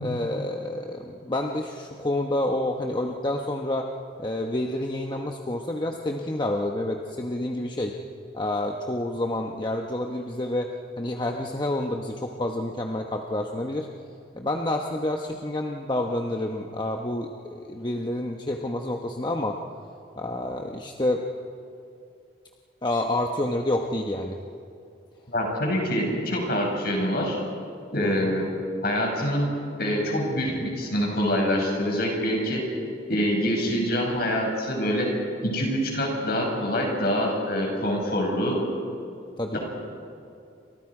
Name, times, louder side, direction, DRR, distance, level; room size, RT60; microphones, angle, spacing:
voice 1, 0.0-3.9 4.2-7.9 8.3-13.9 14.3-19.6 20.2-21.3 22.8-24.4 28.0-28.4 39.4-39.6, left 1 dB, 25° left, 2 dB, 1.1 m, -28 dB
voice 2, 25.3-27.4 27.9-28.5 28.8-29.5 29.8-32.6 33.1-35.1 35.4-38.6, equal, 50° left, 0 dB, 6.3 m, -25 dB
29.5 x 26.0 x 4.9 m, 2.6 s
head